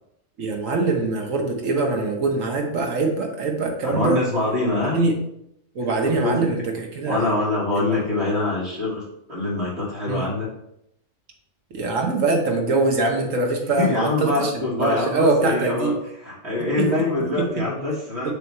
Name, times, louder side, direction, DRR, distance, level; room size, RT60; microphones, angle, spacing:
voice 1, 0.4-4.2 4.7-5.1 5.7-7.3 10.1-10.3 11.7-15.9 16.8-16.9 17.3-17.5 18.2-18.3, right 3 dB, 85° right, 2 dB, 1.5 m, -23 dB
voice 2, 3.8-5.1 6.0-6.5 7.1-10.5 13.8-15.9 16.2-18.3, left 2 dB, 60° right, -6 dB, 1.8 m, -24 dB
7.1 x 3.1 x 4.2 m, 0.78 s
omnidirectional pair, 1.3 m